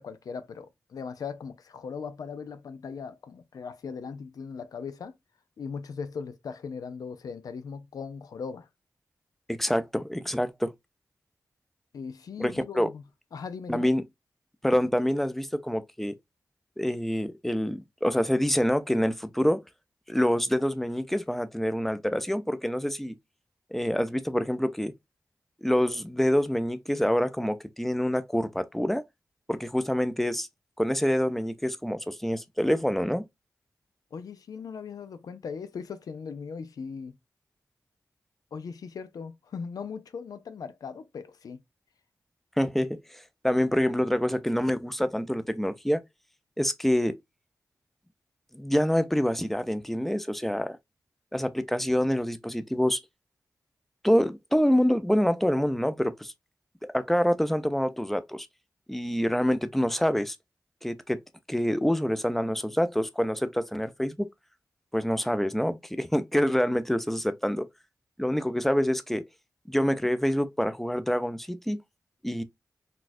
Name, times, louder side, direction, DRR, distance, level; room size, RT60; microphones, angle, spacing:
voice 1, 0.0-5.1 5.6-8.7 11.9-13.0 13.3-13.9 34.1-37.2 38.5-41.6, left 5 dB, 85° left, 0.4 m, -39 dB
voice 2, 9.5-10.7 12.4-12.9 13.7-14.0 14.6-16.2 16.8-19.6 20.1-23.1 23.7-24.9 25.6-29.0 29.5-30.5 30.8-33.2 42.6-46.0 46.6-47.2 48.5-50.8 51.3-53.0 54.0-56.3 56.9-58.5 58.9-60.4 60.8-61.2 61.5-64.3 64.9-67.7 68.2-69.2 69.7-71.8 72.2-72.4, equal, 5° left, 0.5 m, -26 dB
4.1 x 2.3 x 2.6 m
cardioid pair, 50°, 6 cm